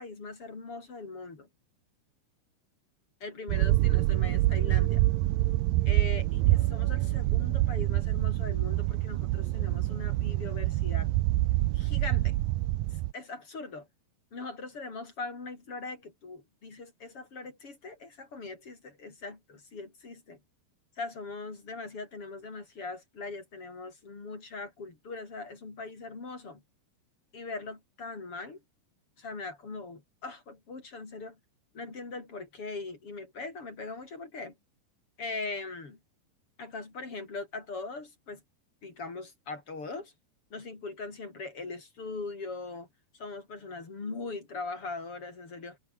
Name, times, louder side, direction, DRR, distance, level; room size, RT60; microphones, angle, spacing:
voice 1, 0.0-1.5 3.2-5.0 5.9-11.1 11.7-12.3 13.1-13.9 14.3-20.4 21.0-26.6 27.3-28.6 29.2-31.4 31.7-34.5 35.2-36.0 36.6-38.4 38.8-40.1 40.5-42.9 43.1-45.8, left 3 dB, 35° left, 4.9 m, -40 dB
sound 1, 3.5-13.1, right 17 dB, 80° right, 2.1 m, -26 dB
omnidirectional pair, 4.8 m